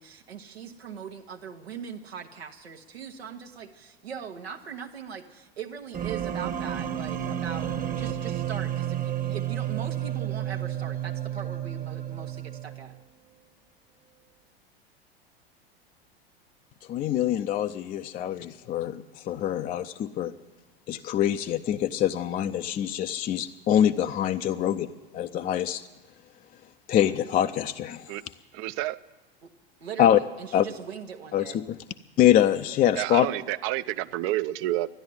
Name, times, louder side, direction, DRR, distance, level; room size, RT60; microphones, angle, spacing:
voice 1, 0.0-12.9 29.4-29.5 29.8-31.6, right 7 dB, 85° right, 2 dB, 1.1 m, -40 dB
sound 1, 5.9-13.0, right 10 dB, 25° right, 1.1 m, -31 dB
voice 2, 16.9-20.3 20.9-24.9 25.1-25.8 26.9-28.1 30.0-30.2 30.5-30.7 31.3-31.6 32.2-33.3, left 11 dB, 30° left, 8 dB, 0.5 m, -24 dB
voice 3, 28.5-29.0 33.0-34.9, right 16 dB, 45° right, 14 dB, 0.6 m, -29 dB
13.0 x 10.5 x 9.4 m, 1.1 s
hypercardioid pair, 90°, 30 cm